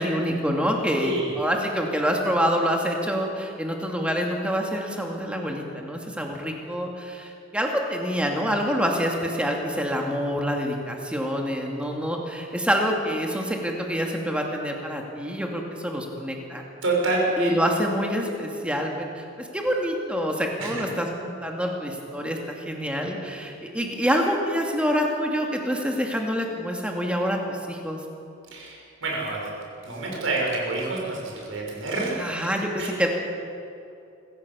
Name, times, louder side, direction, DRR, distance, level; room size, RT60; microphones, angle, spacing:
voice 1, 0.0-16.6 17.4-28.0 32.2-33.1, equal, 5° right, 1 dB, 2.4 m, -26 dB
voice 2, 1.0-1.4 16.8-17.5 20.6-20.8 28.5-29.5 29.8-32.2 32.8-33.1, right 2 dB, 75° right, -2 dB, 5.7 m, -27 dB
26.0 x 15.0 x 7.0 m, 2.7 s
head